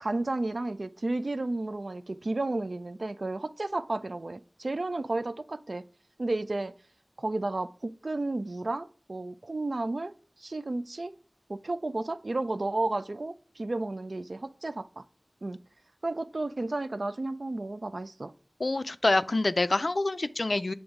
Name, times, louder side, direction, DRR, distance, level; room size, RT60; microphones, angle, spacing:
voice 1, 0.0-5.9 6.2-6.7 7.2-10.1 10.4-11.2 11.5-15.0 15.4-15.6 16.0-18.3, right 2 dB, 85° right, 0.4 m, -32 dB
voice 2, 18.6-20.7, left 2 dB, 85° left, 0.3 m, -26 dB
7.9 x 3.4 x 3.6 m
wide cardioid pair, 50°, 0 cm